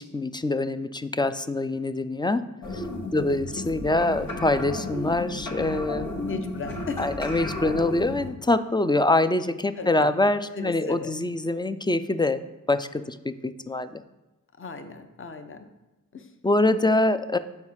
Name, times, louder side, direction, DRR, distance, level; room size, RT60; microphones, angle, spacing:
voice 1, 0.0-2.4 2.7-2.8 3.1-6.1 7.0-12.4 12.7-13.3 13.7-14.0 16.4-17.4, left 2 dB, 15° left, 11 dB, 0.3 m, -24 dB
sound 1, 2.6-8.3, left 2 dB, 90° left, 1.2 m, -33 dB
voice 2, 6.2-7.1 9.8-11.1 14.6-15.7 16.1-16.3, left 4 dB, 35° left, 7 dB, 0.7 m, -37 dB
5.3 x 4.6 x 5.7 m, 1.0 s
cardioid pair, 55°, 34 cm